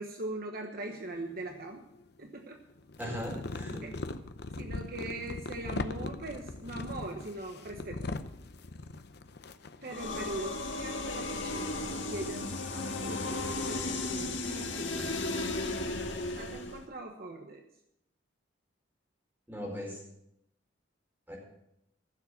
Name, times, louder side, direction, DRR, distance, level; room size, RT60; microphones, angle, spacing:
voice 1, 0.0-1.8 2.2-2.6 3.0-3.3 3.8-3.9 4.6-8.1 9.8-11.8 12.1-15.2 16.3-17.6, right 2 dB, 50° right, 4 dB, 1.1 m, -41 dB
sound 1, 1.1-2.1 2.8-10.5, left 3 dB, 55° left, 0.7 m, -40 dB
voice 2, 3.0-3.8 19.5-20.0 21.3-21.4, equal, 10° right, -2 dB, 4.7 m, -38 dB
sound 2, 9.9-16.8, left 2 dB, 75° left, 1.7 m, -35 dB
15.0 x 7.4 x 7.0 m, 0.81 s
head